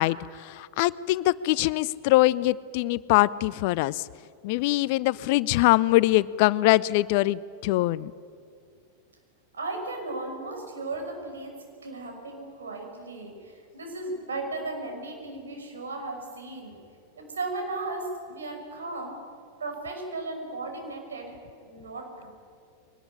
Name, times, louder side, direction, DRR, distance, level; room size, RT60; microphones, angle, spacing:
voice 1, 0.0-4.1 4.4-8.1, left 17 dB, 50° left, 20 dB, 0.5 m, -23 dB
voice 2, 9.5-11.6 11.8-16.8 17.2-19.2 19.6-21.4 21.6-22.3, right 2 dB, 70° right, 3 dB, 5.7 m, -36 dB
23.0 x 19.5 x 9.9 m, 2.3 s
figure-of-eight pair, 90°, 0 cm